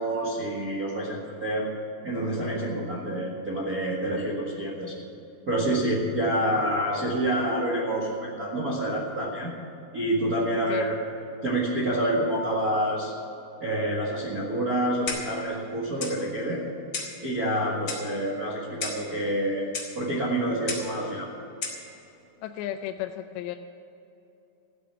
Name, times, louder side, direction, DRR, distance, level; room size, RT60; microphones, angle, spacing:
voice 1, 0.0-1.7 2.0-5.0 5.5-9.6 9.9-10.9 11.4-13.1 13.6-16.6 17.2-19.7 19.9-21.3, right 1 dB, 65° right, -4 dB, 0.9 m, -27 dB
Clock, 15.1-15.4 16.0-16.2 16.9-17.2 17.9-18.1 18.8-19.1 19.7-19.9 20.7-20.9 21.6-21.8, left 3 dB, 35° left, 1.7 m, -33 dB
voice 2, 22.4-23.6, left 12 dB, 90° left, 6 dB, 2.8 m, -33 dB
15.0 x 8.5 x 9.3 m, 2.9 s
omnidirectional pair, 4.9 m